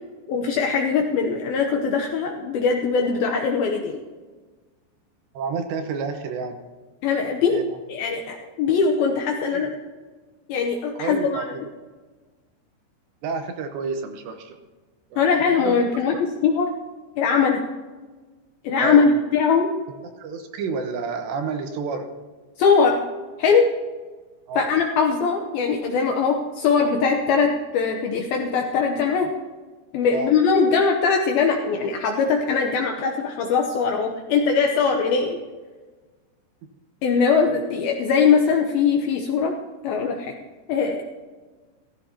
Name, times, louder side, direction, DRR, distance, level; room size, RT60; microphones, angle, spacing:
voice 1, 0.3-4.0 7.0-7.6 7.9-9.7 10.5-11.5 15.2-16.7 17.2-17.7 18.6-19.7 22.6-23.0 23.4-23.7 24.6-29.3 29.9-35.4 37.0-39.6 39.8-40.4 40.7-41.0, left 5 dB, 80° left, 2 dB, 2.2 m, -21 dB
voice 2, 5.3-6.6 7.5-7.8 9.4-9.7 11.0-11.5 13.2-14.6 15.1-15.8 16.1-16.2 18.8-19.1 20.2-22.1 24.5-24.7 30.1-30.3 37.5-37.6, right 4 dB, 75° right, 5 dB, 3.1 m, -30 dB
15.0 x 15.0 x 2.9 m, 1.4 s
omnidirectional pair, 5.3 m